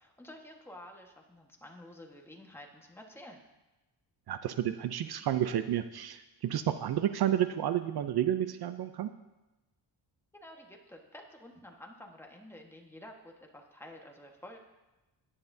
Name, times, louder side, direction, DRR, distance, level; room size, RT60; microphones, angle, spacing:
voice 1, 0.0-3.4 10.3-14.6, left 1 dB, 5° left, 1 dB, 1.4 m, -50 dB
voice 2, 4.3-9.1, right 11 dB, 60° right, 10 dB, 0.6 m, -31 dB
17.5 x 9.8 x 2.7 m, 1.0 s
cardioid pair, 115°, 43 cm